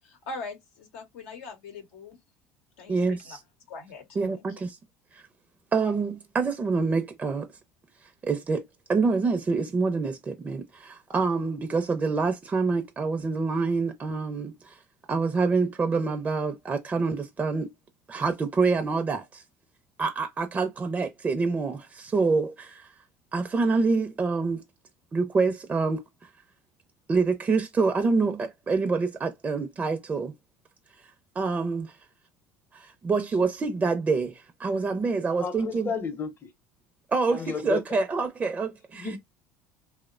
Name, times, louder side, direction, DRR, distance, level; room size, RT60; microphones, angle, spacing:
voice 1, 0.0-2.2 2.8-3.0 3.2-3.4 3.7-4.1 4.4-4.5, left 3 dB, 80° left, 0.7 m, -41 dB
voice 2, 2.9-3.4 4.2-4.8 5.1-5.2 5.7-7.5 8.2-8.6 8.9-14.8 15.1-17.7 18.1-19.4 20.0-22.9 23.3-24.6 25.1-26.0 27.1-30.3 31.4-32.0 32.7-35.9 37.1-39.1, right 4 dB, 25° right, 0.5 m, -26 dB
voice 3, 35.3-36.5 37.3-37.8 38.9-39.2, left 5 dB, 35° left, 0.7 m, -33 dB
2.8 x 2.1 x 2.4 m
hypercardioid pair, 85°, 7 cm